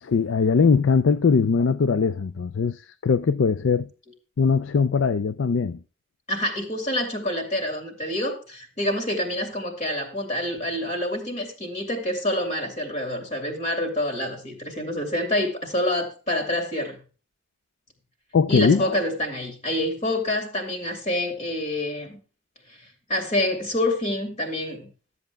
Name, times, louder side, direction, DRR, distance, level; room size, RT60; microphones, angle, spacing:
voice 1, 0.0-3.9 4.4-5.8 18.3-18.8, left 5 dB, 65° left, 0.4 m, -21 dB
voice 2, 6.3-17.0 18.5-22.2 22.7-22.8 23.1-24.9, left 1 dB, 35° left, 2.6 m, -27 dB
13.0 x 8.0 x 3.4 m
head